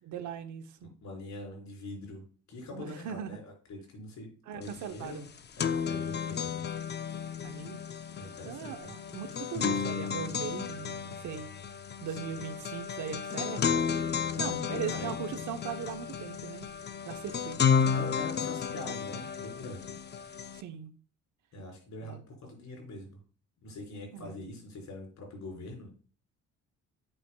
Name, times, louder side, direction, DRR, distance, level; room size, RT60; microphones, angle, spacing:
voice 1, 0.0-0.9 2.7-3.4 4.5-5.3 7.4-7.8 8.4-11.5 12.0-13.7 14.4-16.7 17.1-18.1 20.5-20.9 22.0-22.2 24.1-24.5, right 8 dB, 75° right, 0.9 m, -39 dB
voice 2, 0.8-5.2 5.6-6.6 8.1-8.9 12.0-12.3 14.3-15.3 17.9-20.0 21.5-23.2 23.6-25.9, left 2 dB, 70° left, 3.7 m, -44 dB
sound 1, 4.7-4.8 5.1-20.6, left 7 dB, 35° left, 0.6 m, -32 dB
8.2 x 6.1 x 2.2 m
cardioid pair, 90°, 30 cm